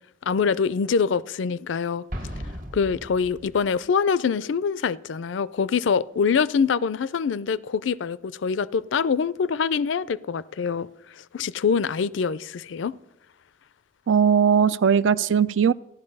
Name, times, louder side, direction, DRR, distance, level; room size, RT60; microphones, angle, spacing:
voice 1, 0.3-2.0 2.7-10.9 11.3-12.9, left 6 dB, 75° left, 0.4 m, -24 dB
Explosion, 2.1-3.8, equal, 45° right, 1.3 m, -36 dB
voice 2, 14.1-15.7, right 7 dB, 75° right, 0.4 m, -19 dB
15.0 x 11.5 x 5.4 m
head